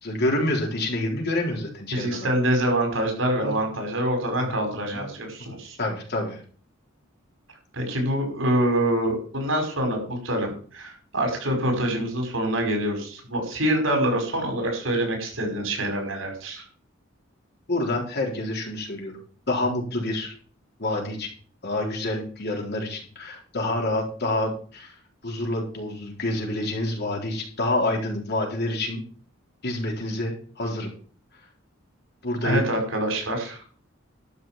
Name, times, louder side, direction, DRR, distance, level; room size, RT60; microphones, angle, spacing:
voice 1, 0.0-2.3 3.4-3.6 4.4-4.5 4.9-5.1 5.8-6.4 17.7-19.1 19.5-20.3 20.8-21.3 21.6-24.9 25.2-29.0 29.6-30.9 32.2-32.7, left 1 dB, 55° left, 0 dB, 4.1 m, -27 dB
voice 2, 1.9-5.8 7.7-16.6 32.4-33.6, right 1 dB, 80° right, 3 dB, 5.2 m, -25 dB
12.0 x 5.9 x 7.6 m, 0.43 s
head